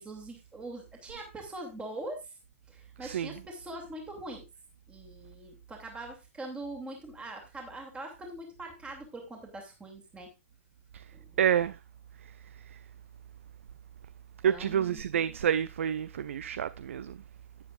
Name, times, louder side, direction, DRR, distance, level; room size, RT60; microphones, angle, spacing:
voice 1, 0.0-2.4 2.7-4.5 4.9-10.3 11.1-11.4 14.4-15.0, right 2 dB, 15° right, 2.6 m, -42 dB
voice 2, 3.0-3.3 10.9-11.0 11.4-11.8 12.7-12.8 14.4-17.2, right 9 dB, 65° right, 0.4 m, -28 dB
11.0 x 9.6 x 2.5 m
figure-of-eight pair, 110°, 8 cm